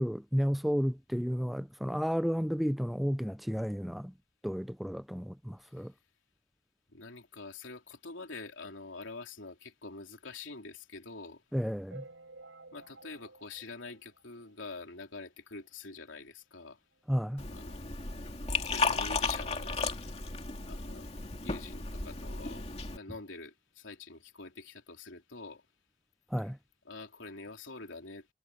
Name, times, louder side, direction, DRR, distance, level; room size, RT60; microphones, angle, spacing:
voice 1, 0.0-4.1 4.4-5.9 11.5-12.0 17.1-17.4 26.3-26.6, equal, ahead, 0.3 m, -32 dB
voice 2, 6.9-11.4 12.7-16.8 17.5-17.8 18.7-19.8 20.7-21.1 21.4-25.7 26.4-26.5 26.8-28.3, left 3 dB, 80° left, 3.4 m, -46 dB
sound 1, 11.9-14.8 15.2-15.3 15.5-15.7 16.0-16.1 16.9-17.0 17.5-17.6, right 3 dB, 80° right, 5.3 m, -53 dB
Liquid, 17.4-23.0, left 3 dB, 30° left, 2.7 m, -34 dB
head